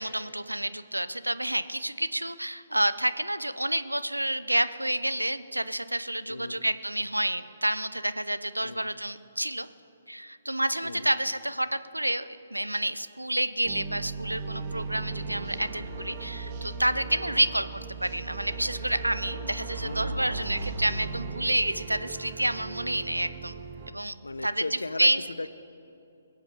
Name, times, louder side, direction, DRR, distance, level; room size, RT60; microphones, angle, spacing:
voice 1, 0.0-9.7 10.1-17.7 18.0-23.5 23.9-24.1 24.4-24.6 25.0-25.2, right 1 dB, 90° right, 13 dB, 0.7 m, -29 dB
voice 2, 6.3-6.6 8.6-8.9 10.8-11.1 17.2-17.4 19.8-20.5 24.2-25.1 25.4-25.5, left 2 dB, 75° left, 13 dB, 0.8 m, -37 dB
sound 1, 13.6-23.9, right 4 dB, 30° right, 1.4 m, -37 dB
22.5 x 8.2 x 6.7 m, 2.7 s
figure-of-eight pair, 130°, 0 cm